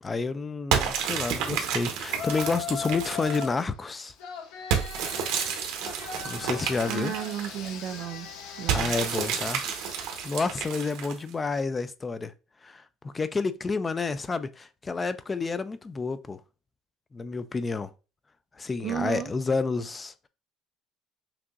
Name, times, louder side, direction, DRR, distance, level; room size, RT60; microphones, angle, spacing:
voice 1, 0.0-4.1 6.3-7.1 8.7-9.7 10.2-12.3 12.6-16.4 17.1-17.9 18.6-20.3, left 4 dB, 20° left, 0.3 m, -30 dB
sound 1, 0.7-3.6 4.7-7.7 8.7-11.3, right 7 dB, 80° right, 1.0 m, -30 dB
Yell, 2.1-3.6 4.2-10.9, left 7 dB, 75° left, 1.0 m, -39 dB
voice 2, 6.9-8.3 8.6-8.9 18.8-19.3, right 11 dB, 55° right, 0.4 m, -33 dB
5.9 x 2.9 x 2.5 m
cardioid pair, 145°, 0 cm